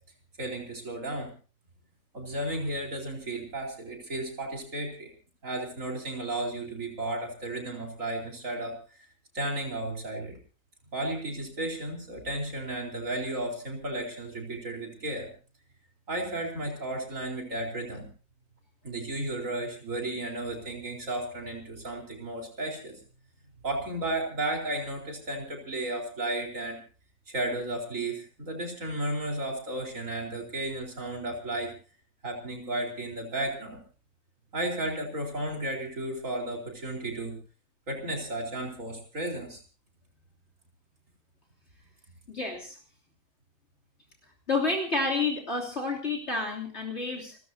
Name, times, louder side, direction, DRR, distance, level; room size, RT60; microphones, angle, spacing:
voice 1, 0.4-1.3 2.1-5.1 5.4-8.7 9.3-10.3 10.9-15.3 16.1-18.0 18.8-22.9 23.6-26.8 27.3-31.7 32.2-33.8 34.5-37.4 37.9-39.6, right 1 dB, 75° right, 1 dB, 4.7 m, -33 dB
voice 2, 42.3-42.8 44.5-47.4, left 3 dB, 55° left, -1 dB, 3.4 m, -29 dB
29.5 x 15.5 x 2.8 m, 0.38 s
omnidirectional pair, 1.4 m